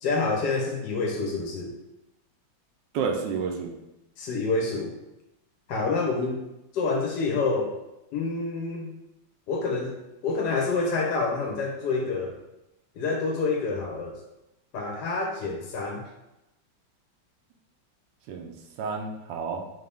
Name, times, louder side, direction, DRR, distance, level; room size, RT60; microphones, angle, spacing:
voice 1, 0.0-1.7 4.2-4.9 5.7-6.4 6.7-7.8 8.1-8.9 9.5-12.4 12.9-14.2 14.7-16.1, left 3 dB, 70° left, 0 dB, 1.1 m, -27 dB
voice 2, 2.9-3.7 18.3-19.6, right 5 dB, 75° right, 2 dB, 1.2 m, -30 dB
3.9 x 2.6 x 3.3 m, 0.93 s
omnidirectional pair, 2.0 m